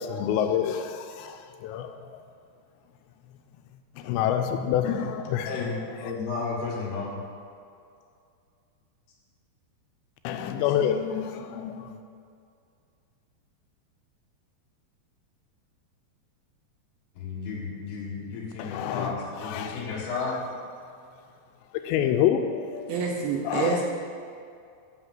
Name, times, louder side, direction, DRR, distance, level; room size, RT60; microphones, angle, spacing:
voice 1, 0.0-2.0 4.0-5.5 10.2-12.0 18.6-20.4 21.8-22.9 23.4-23.8, left 9 dB, 85° left, 6 dB, 2.9 m, -28 dB
voice 2, 5.5-7.2 17.2-20.4, left 4 dB, 70° left, -3 dB, 3.4 m, -33 dB
voice 3, 22.9-23.8, right 5 dB, 75° right, 0 dB, 2.4 m, -27 dB
8.0 x 6.4 x 7.7 m, 2.4 s
omnidirectional pair, 5.0 m